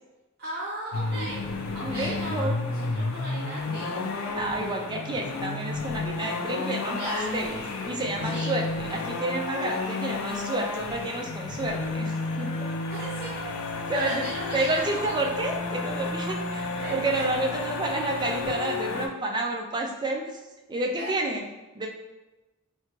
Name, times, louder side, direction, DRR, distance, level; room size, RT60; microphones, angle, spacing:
voice 1, 0.4-1.4 1.7-4.0 6.9-7.4 8.2-8.5 12.9-13.5 13.7-15.1 16.8-17.3 21.0-21.2, right 1 dB, 50° right, -8 dB, 1.0 m, -37 dB
sound 1, 0.9-19.1, left 3 dB, 75° left, 0.4 m, -31 dB
voice 2, 1.8-2.5 4.3-12.5 13.9-20.4 20.7-21.5 21.8-21.9, right 2 dB, 20° right, 1 dB, 0.3 m, -30 dB
3.6 x 2.2 x 3.0 m, 1.1 s
head